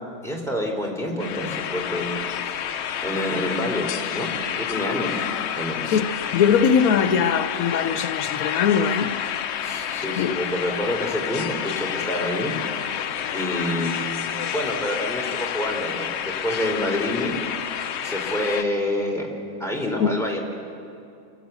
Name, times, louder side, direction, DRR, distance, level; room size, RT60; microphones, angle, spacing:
voice 1, 0.2-2.2 2.4-2.7 3.0-4.3 4.6-5.3 5.5-5.8 9.6-12.5 12.8-12.9 13.3-17.3 18.0-19.3 19.6-20.4, left 1 dB, ahead, 3.3 m, -27 dB
sound 1, 1.2-18.6, left 9 dB, 60° left, 0.8 m, -29 dB
voice 2, 6.3-9.1 10.2-10.4 20.0-20.1, left 7 dB, 80° left, 1.2 m, -21 dB
28.0 x 12.0 x 8.1 m
omnidirectional pair, 1.5 m